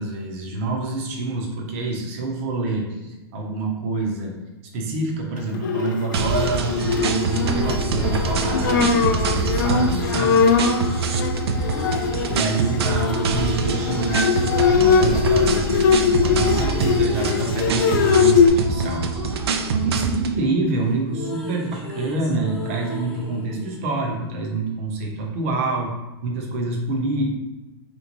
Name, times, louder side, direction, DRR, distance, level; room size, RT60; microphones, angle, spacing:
voice 1, 0.0-4.4 4.7-10.4 12.3-19.0 19.7-25.9 26.2-27.3, right 2 dB, 35° right, 0 dB, 0.7 m, -27 dB
Bowed string instrument, 5.5-18.5, left 6 dB, 50° left, 0.4 m, -21 dB
sound 1, 6.1-20.4, right 5 dB, 75° right, 0.5 m, -25 dB
sound 2, 6.8-10.7 11.6-15.8 16.1-24.6, left 1 dB, 5° left, 0.7 m, -35 dB
3.3 x 3.0 x 4.0 m, 1.1 s
supercardioid pair, 180°, 13 cm